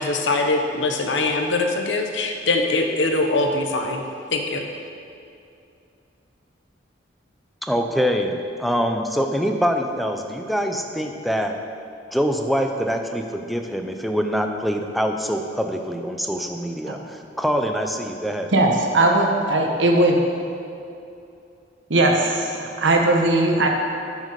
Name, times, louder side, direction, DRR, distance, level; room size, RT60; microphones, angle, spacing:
voice 1, 0.0-4.0 4.3-4.7, left 2 dB, 75° left, 4 dB, 0.9 m, -22 dB
voice 2, 7.6-11.5 12.1-18.5, equal, ahead, 4 dB, 0.5 m, -24 dB
voice 3, 18.5-20.2 21.9-23.7, right 2 dB, 80° right, 2 dB, 1.2 m, -19 dB
9.1 x 6.3 x 5.3 m, 2.6 s
head